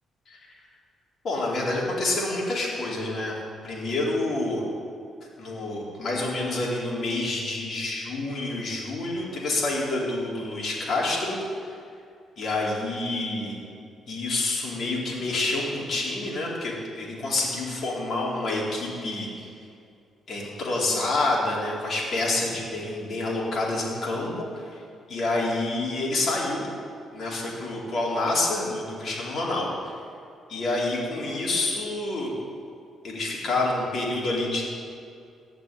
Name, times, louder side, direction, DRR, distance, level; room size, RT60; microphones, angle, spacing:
voice 1, 1.2-3.3 3.6-4.6 5.4-11.8 12.4-13.5 14.1-19.5 20.3-24.8 25.1-26.7 27.1-30.0 30.5-32.3 33.0-34.7, left 2 dB, 55° left, -4 dB, 4.3 m, -28 dB
15.5 x 6.2 x 9.9 m, 2.4 s
cardioid pair, 90°, 0 cm